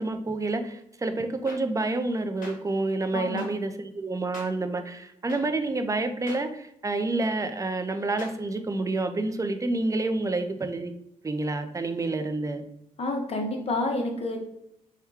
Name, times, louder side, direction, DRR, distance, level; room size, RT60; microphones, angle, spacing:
voice 1, 0.0-10.9 11.2-12.6, right 2 dB, 20° right, 7 dB, 0.5 m, -28 dB
sound 1, 1.5-1.6 2.4-2.5 3.4-3.5 4.3-4.5 5.3-5.4 6.3-6.4 7.2-7.3 8.2-8.3, left 2 dB, 65° left, 1.3 m, -42 dB
voice 2, 3.1-3.5 13.0-14.4, left 2 dB, 45° left, 3 dB, 0.9 m, -29 dB
3.6 x 2.2 x 4.4 m, 0.78 s
cardioid pair, 80°, 14 cm